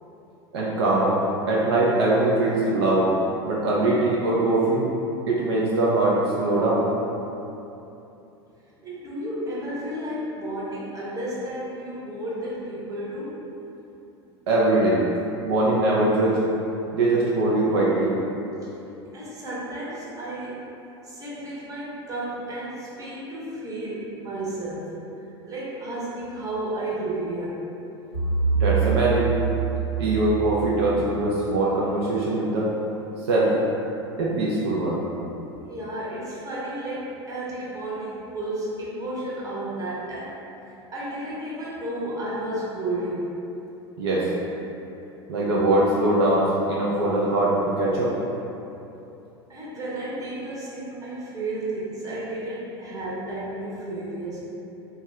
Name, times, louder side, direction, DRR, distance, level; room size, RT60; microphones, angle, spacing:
voice 1, 0.5-1.2 1.5-3.1 3.4-4.8 5.3-6.9 14.5-15.0 15.4-16.4 16.9-18.1 28.5-29.3 30.0-32.7 33.3-33.5 34.2-35.0 44.0-44.3 45.3-48.1, right 2 dB, 65° right, -6 dB, 0.5 m, -22 dB
voice 2, 8.8-13.4 19.1-20.6 21.0-24.9 25.4-27.6 35.7-40.3 40.9-43.3 49.5-54.4, right 1 dB, 25° right, -7 dB, 0.9 m, -32 dB
sound 1, 28.1-31.3, right 6 dB, 85° right, 1.2 m, -25 dB
2.6 x 2.3 x 3.1 m, 2.9 s
hypercardioid pair, 85°, 14 cm